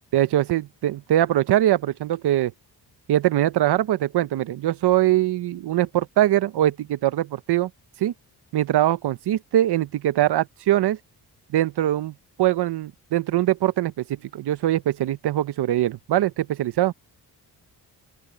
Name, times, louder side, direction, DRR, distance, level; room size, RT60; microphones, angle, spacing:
voice 1, 0.1-2.5 3.1-7.7 8.0-8.1 8.5-11.0 11.5-16.9, right 13 dB, 80° right, 0.8 m, -22 dB
open air
wide cardioid pair, 165°, 39 cm